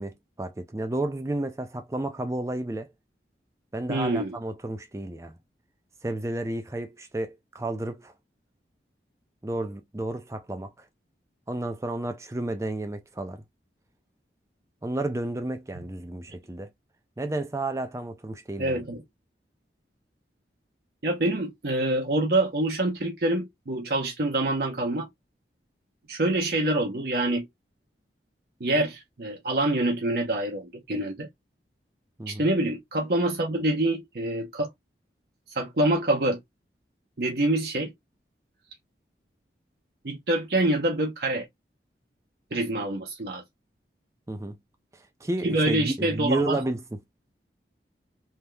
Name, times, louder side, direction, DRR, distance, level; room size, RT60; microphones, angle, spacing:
voice 1, 0.0-2.9 3.7-5.4 6.0-8.1 9.4-10.9 11.5-13.4 14.8-16.7 17.2-18.8 32.2-32.5 44.3-44.6 44.9-46.8, right 1 dB, 15° right, 0.4 m, -31 dB
voice 2, 3.9-4.4 18.6-19.0 21.0-25.1 26.1-27.5 28.6-31.3 32.3-34.7 35.5-36.4 37.2-37.9 40.0-41.5 42.5-43.4 45.4-46.6, right 1 dB, 65° right, 0.8 m, -26 dB
3.3 x 2.8 x 2.2 m
head